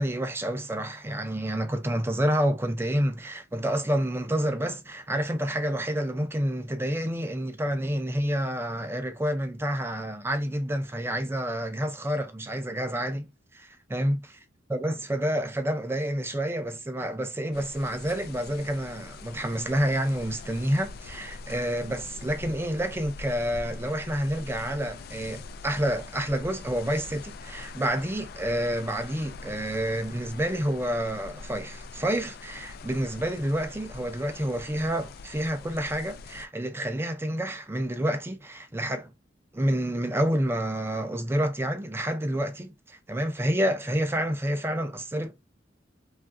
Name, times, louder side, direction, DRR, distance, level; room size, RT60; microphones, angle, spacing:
voice 1, 0.0-13.3 13.5-14.3 14.7-39.1 39.5-45.3, equal, 15° right, 0.4 m, -29 dB
sound 1, 17.5-36.5, left 3 dB, 55° left, 0.3 m, -43 dB
3.1 x 2.4 x 2.5 m
head